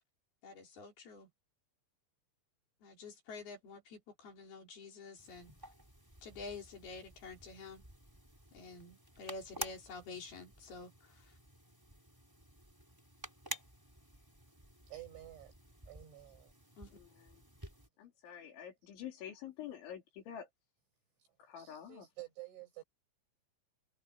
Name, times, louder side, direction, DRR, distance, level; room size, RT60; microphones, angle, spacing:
voice 1, 0.4-1.3 2.8-5.5 6.2-7.8 8.5-11.4 16.8-16.9, left 4 dB, 60° left, 6.4 m, -49 dB
sound 1, 5.2-17.9, right 1 dB, 5° right, 4.2 m, -51 dB
voice 2, 14.9-15.5 15.9-16.5 18.5-18.6 21.6-22.8, right 16 dB, 85° right, 10.0 m, -50 dB
voice 3, 16.9-17.4 18.0-20.5 21.4-22.1, left 9 dB, 85° left, 6.0 m, -48 dB
omnidirectional pair, 5.2 m